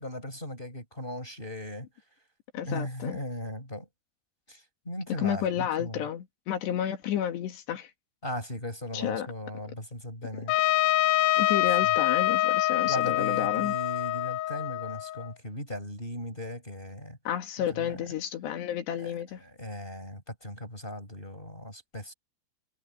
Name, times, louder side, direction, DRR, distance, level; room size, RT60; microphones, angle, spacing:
voice 1, 0.0-1.9 2.6-3.9 4.5-6.0 8.2-10.5 11.8-11.9 12.8-17.2 17.7-18.1 19.0-22.1, left 1 dB, 10° left, 4.7 m, -38 dB
voice 2, 2.5-3.2 5.1-7.9 8.9-9.3 11.4-13.7 17.3-19.4, left 10 dB, 65° left, 3.9 m, -31 dB
Trumpet, 10.5-15.3, left 15 dB, 90° left, 2.3 m, -25 dB
omnidirectional pair, 5.6 m